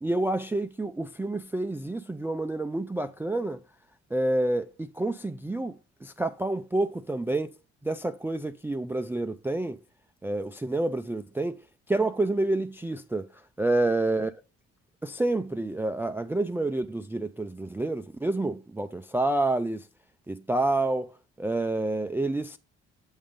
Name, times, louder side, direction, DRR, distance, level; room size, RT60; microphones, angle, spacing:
voice 1, 0.0-3.6 4.1-7.5 7.8-9.8 10.2-11.6 11.9-13.3 13.6-14.3 15.0-19.9 20.3-22.6, right 2 dB, 5° right, 0.4 m, -28 dB
8.0 x 3.6 x 5.1 m
cardioid pair, 90°, 30 cm